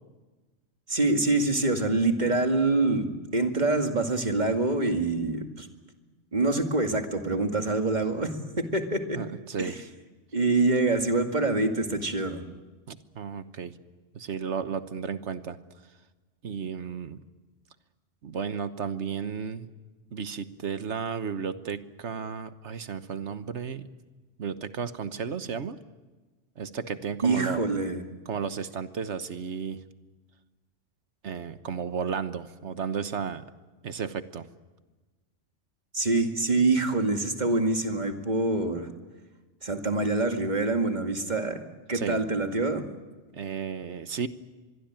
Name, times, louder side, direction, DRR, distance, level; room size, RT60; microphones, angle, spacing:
voice 1, 0.9-5.7 6.3-9.2 9.6-9.7 10.3-12.5 27.2-28.1 35.9-38.9 39.6-41.6 41.9-42.8, right 3 dB, 35° right, 5 dB, 2.3 m, -25 dB
voice 2, 9.1-9.8 12.9-13.7 14.1-15.6 16.4-17.2 18.2-19.7 20.1-23.9 24.4-25.8 26.6-27.6 28.3-29.8 31.2-33.5 33.8-34.4 41.9-42.2 43.3-44.3, right 6 dB, 70° right, 12 dB, 1.4 m, -33 dB
25.0 x 22.0 x 9.0 m, 1.2 s
omnidirectional pair, 1.3 m